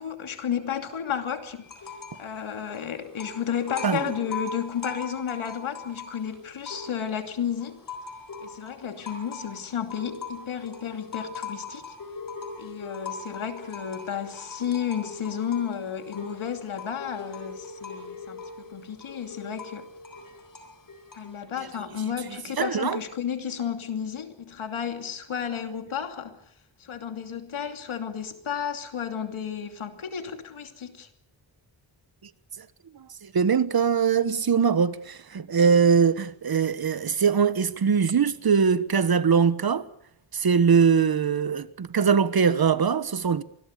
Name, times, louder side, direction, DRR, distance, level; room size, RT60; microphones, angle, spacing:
voice 1, 0.0-1.6 2.2-7.8 8.4-11.8 12.6-19.9 21.1-26.4 26.8-31.1, left 8 dB, 85° left, 2.9 m, -32 dB
sound 1, 1.6-2.3 2.5-7.2 7.6-21.4, left 4 dB, 45° left, 4.1 m, -40 dB
voice 2, 22.6-23.0 32.6-32.7 32.9-39.9 40.3-43.4, right 6 dB, 50° right, 1.3 m, -22 dB
25.5 x 20.5 x 6.7 m
wide cardioid pair, 115°, 47 cm